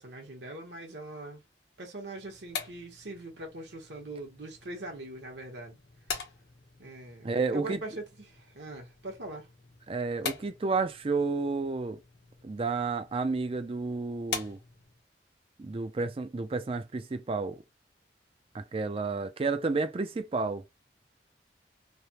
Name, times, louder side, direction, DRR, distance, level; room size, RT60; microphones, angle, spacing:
voice 1, 0.0-1.4 1.8-5.8 6.8-9.5, right 2 dB, 80° right, 1.2 m, -42 dB
sound 1, 2.2-15.0, left 6 dB, 65° left, 1.1 m, -44 dB
voice 2, 7.2-7.8 9.9-12.0 12.4-14.6 15.6-17.6 18.5-20.6, right 3 dB, 30° right, 0.4 m, -31 dB
3.3 x 2.2 x 2.8 m
head